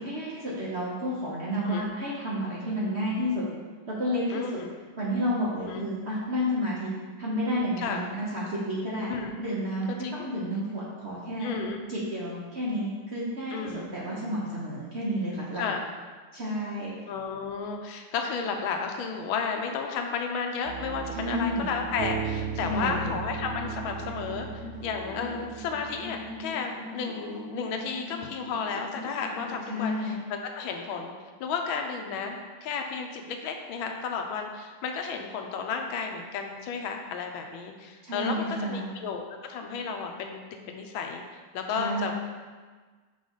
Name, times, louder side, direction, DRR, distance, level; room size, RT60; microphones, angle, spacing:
voice 1, 0.0-3.4 3.9-4.4 5.0-6.9 7.2-11.5 11.9-15.6 16.3-17.0 21.1-21.7 22.6-23.1 29.7-30.2 38.0-38.9 41.7-42.1, equal, 45° right, -6 dB, 1.0 m, -31 dB
voice 2, 4.3-4.7 5.6-5.8 7.8-8.0 9.1-9.3 10.0-10.3 11.4-11.8 13.5-13.9 15.6-15.8 17.1-31.1 31.4-39.2 39.5-41.2 41.5-42.1, left 5 dB, 85° left, 3 dB, 1.4 m, -33 dB
sound 1, 20.6-26.4, right 7 dB, 75° right, 1.0 m, -37 dB
sound 2, 21.3-30.0, left 2 dB, 10° right, 1.9 m, -42 dB
5.5 x 5.1 x 3.9 m, 1.4 s
omnidirectional pair, 2.2 m